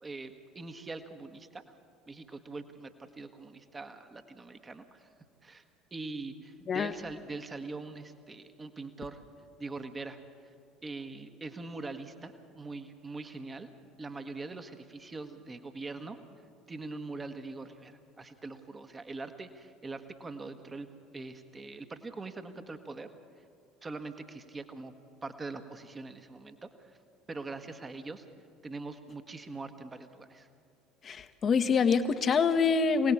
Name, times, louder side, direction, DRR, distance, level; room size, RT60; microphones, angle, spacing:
voice 1, 0.0-1.7 2.1-5.1 5.4-5.6 5.9-9.2 9.6-10.2 10.4-10.5 10.8-13.7 14.0-16.2 16.7-20.9 21.1-23.1 23.4-23.5 23.8-24.9 25.2-27.0 27.3-28.3 28.6-30.5, right 3 dB, 20° right, 8 dB, 1.5 m, -42 dB
voice 2, 31.0-33.1, left 5 dB, 35° left, 10 dB, 1.2 m, -25 dB
26.5 x 18.5 x 8.6 m, 2.4 s
figure-of-eight pair, 65°, 0 cm